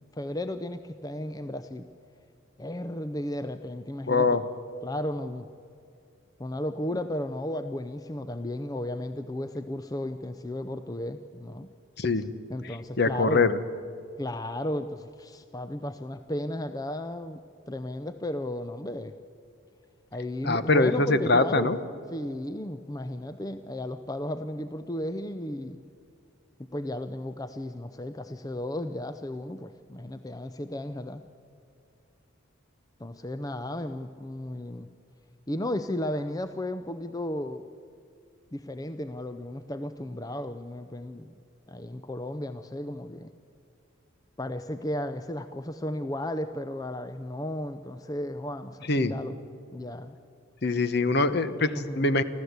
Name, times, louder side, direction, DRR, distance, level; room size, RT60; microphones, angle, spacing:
voice 1, 0.0-1.9 2.6-4.4 4.8-5.5 6.4-11.7 12.1-13.5 14.2-17.4 17.7-19.2 20.1-21.8 22.1-25.8 26.6-31.2 33.0-34.9 35.5-37.7 38.5-41.3 41.7-43.3 44.4-49.4 49.7-50.2 51.7-52.1, left 1 dB, 15° left, 10 dB, 0.5 m, -34 dB
voice 2, 4.1-4.4 12.0-12.3 12.6-13.5 20.4-21.8 48.9-49.1 50.6-52.2, left 3 dB, 50° left, 12 dB, 1.0 m, -23 dB
25.0 x 15.0 x 8.1 m, 2.5 s
head